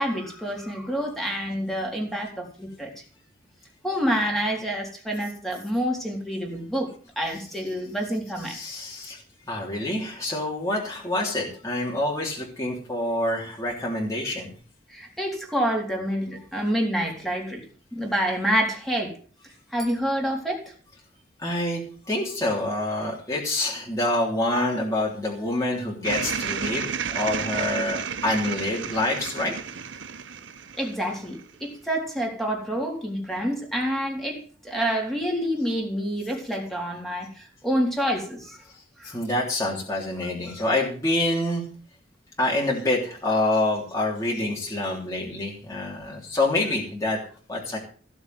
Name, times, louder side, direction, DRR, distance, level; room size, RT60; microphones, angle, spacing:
voice 1, 0.0-2.9 3.8-8.6 14.9-17.6 17.9-19.1 19.7-20.6 30.8-38.6 39.0-39.1, equal, ahead, 0 dB, 3.8 m, -27 dB
voice 2, 8.5-9.2 9.5-14.5 21.4-21.8 22.1-29.5 39.1-41.6 42.4-47.2 47.5-47.8, left 1 dB, 15° left, -4 dB, 3.3 m, -26 dB
sound 1, 26.0-31.5, right 6 dB, 70° right, 0.9 m, -32 dB
16.0 x 7.0 x 7.7 m, 0.42 s
head